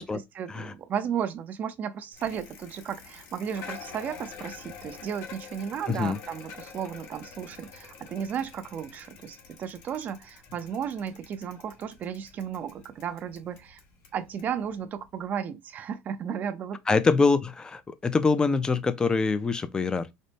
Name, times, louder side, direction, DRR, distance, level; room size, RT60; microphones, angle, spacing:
voice 1, 0.0-13.8 14.1-17.0, right 8 dB, 40° right, 0.5 m, -34 dB
Bicycle, 2.1-15.3, left 6 dB, 70° left, 1.1 m, -47 dB
voice 2, 5.9-6.2 16.9-20.1, left 4 dB, 20° left, 0.5 m, -24 dB
4.1 x 2.1 x 3.4 m
cardioid pair, 120°, 4 cm